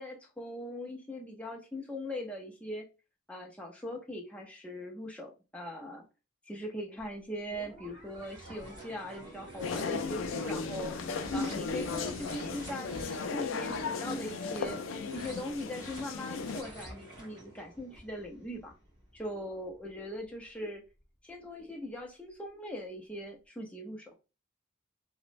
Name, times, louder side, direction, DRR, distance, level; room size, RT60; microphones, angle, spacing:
voice 1, 0.0-2.8 3.3-6.0 6.5-11.0 11.3-14.8 15.1-18.7 19.1-20.8 21.2-24.1, left 1 dB, 5° left, 0 dB, 0.5 m, -41 dB
sound 1, 7.0-7.1 7.5-19.9 20.4-20.5, right 1 dB, 25° right, 1.2 m, -48 dB
sound 2, 9.6-16.6, left 4 dB, 80° left, 0.4 m, -36 dB
2.9 x 2.0 x 2.5 m, 0.30 s
head